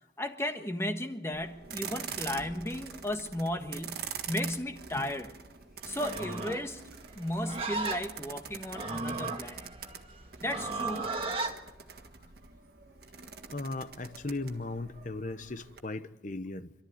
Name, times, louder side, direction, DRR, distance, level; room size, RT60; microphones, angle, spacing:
voice 1, 0.2-5.3 5.8-6.8 7.1-9.7 10.4-11.1, left 1 dB, 15° left, 5 dB, 1.4 m, -35 dB
sound 1, 1.3-15.8, right 7 dB, 55° right, 1.7 m, -45 dB
Livestock farm animals working animals, 5.9-11.6, right 3 dB, 30° right, 1.7 m, -36 dB
voice 2, 13.5-16.7, left 2 dB, 45° left, 12 dB, 0.9 m, -37 dB
27.0 x 13.0 x 9.6 m, 1.1 s
head